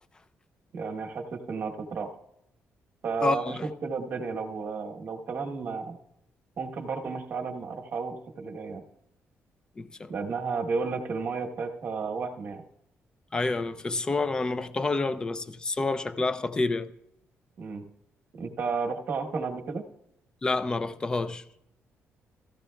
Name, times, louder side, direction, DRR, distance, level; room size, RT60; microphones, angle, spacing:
voice 1, 0.7-2.2 3.0-6.0 6.6-8.8 10.1-12.6 17.6-17.8 18.4-19.9, right 4 dB, 45° right, 1.1 m, -32 dB
voice 2, 3.2-3.7 9.8-10.1 13.3-16.9 20.4-21.4, left 3 dB, 15° left, 0.4 m, -28 dB
16.5 x 13.5 x 2.2 m
cardioid pair, 170°, 5 cm